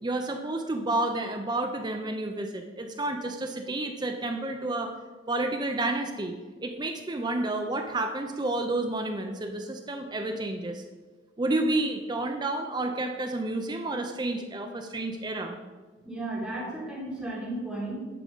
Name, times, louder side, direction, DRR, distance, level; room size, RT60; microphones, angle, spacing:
voice 1, 0.0-5.0 5.3-6.3 6.6-10.8 11.4-15.6, right 2 dB, 20° right, 5 dB, 0.5 m, -30 dB
voice 2, 16.0-18.0, right 1 dB, 5° right, -6 dB, 2.3 m, -34 dB
10.0 x 3.7 x 5.3 m, 1.3 s
head